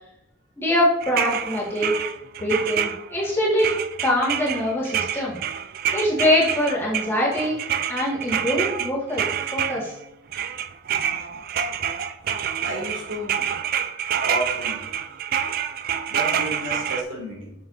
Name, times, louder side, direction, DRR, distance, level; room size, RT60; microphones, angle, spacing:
voice 1, 0.6-1.9 2.4-3.7 4.0-5.4 5.9-7.6 7.9-9.3 9.5-9.9, left 1 dB, 10° left, -6 dB, 1.8 m, -23 dB
sound 1, 1.0-3.3 3.6-10.0 10.3-17.0, right 8 dB, 45° right, 0.3 m, -27 dB
voice 2, 12.6-13.5 14.1-14.8 16.1-17.5, right 1 dB, 75° right, -1 dB, 2.3 m, -31 dB
7.7 x 6.4 x 2.7 m, 0.81 s
head